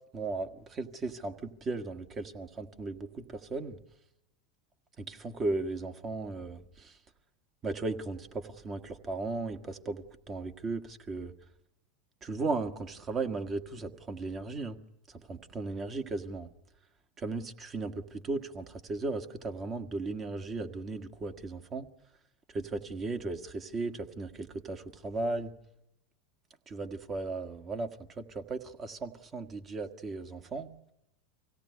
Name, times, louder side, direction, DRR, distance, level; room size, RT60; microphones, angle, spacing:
voice 1, 0.1-3.8 5.0-6.9 7.6-11.3 12.2-14.8 15.1-16.5 17.2-21.9 22.5-25.5 26.7-30.7, right 3 dB, 30° right, 7 dB, 1.6 m, -36 dB
24.5 x 17.0 x 9.5 m, 0.88 s
supercardioid pair, 120°, 0 cm